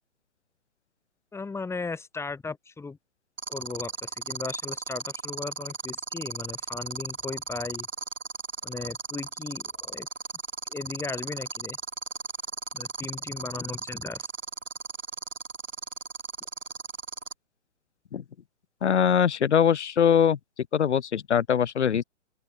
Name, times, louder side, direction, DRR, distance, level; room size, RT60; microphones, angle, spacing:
voice 1, 1.3-3.0 3.5-7.9 8.6-10.1 10.7-11.8 12.7-14.2, left 4 dB, 5° left, 7.2 m, -36 dB
sound 1, 3.4-17.3, right 5 dB, 75° right, 6.4 m, -35 dB
voice 2, 18.8-20.4 20.7-22.0, left 8 dB, 60° left, 2.0 m, -22 dB
open air
figure-of-eight pair, 130°, 38 cm